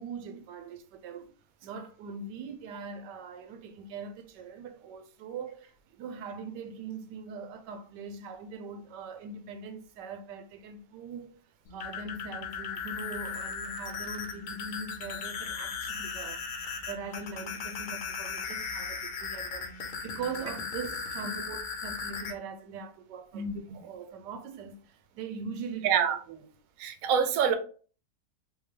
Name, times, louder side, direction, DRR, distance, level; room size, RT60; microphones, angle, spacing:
voice 1, 0.0-1.3 1.6-11.4 11.7-26.5, right 4 dB, 85° right, 1.2 m, -41 dB
sound 1, 11.7-22.3, left 5 dB, 65° left, 1.1 m, -37 dB
voice 2, 23.3-23.8 25.8-26.2 26.8-27.5, right 7 dB, 65° right, 0.9 m, -27 dB
3.6 x 2.7 x 3.2 m
omnidirectional pair, 1.8 m